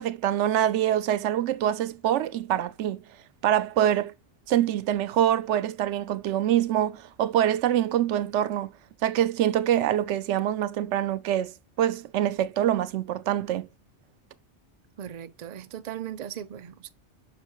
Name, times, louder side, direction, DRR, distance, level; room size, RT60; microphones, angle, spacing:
voice 1, 0.0-3.0 3.4-4.1 4.5-8.7 9.0-13.7, right 11 dB, 90° right, 0.9 m, -25 dB
voice 2, 15.0-16.9, right 10 dB, 55° right, 0.5 m, -38 dB
5.9 x 5.2 x 3.0 m
omnidirectional pair, 1.2 m